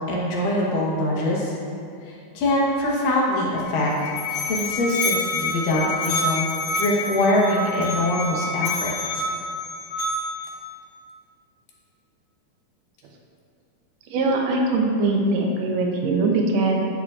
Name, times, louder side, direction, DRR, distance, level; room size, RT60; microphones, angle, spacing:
voice 1, 0.0-1.5 2.0-3.9 4.4-6.4 6.8-8.9, left 1 dB, 90° left, -4 dB, 2.9 m, -23 dB
Musical instrument, 3.6-10.6, left 2 dB, 65° left, 1.9 m, -27 dB
voice 2, 14.1-16.8, right 2 dB, 75° right, 0 dB, 1.5 m, -21 dB
10.0 x 6.7 x 2.4 m, 2.5 s
omnidirectional pair, 3.8 m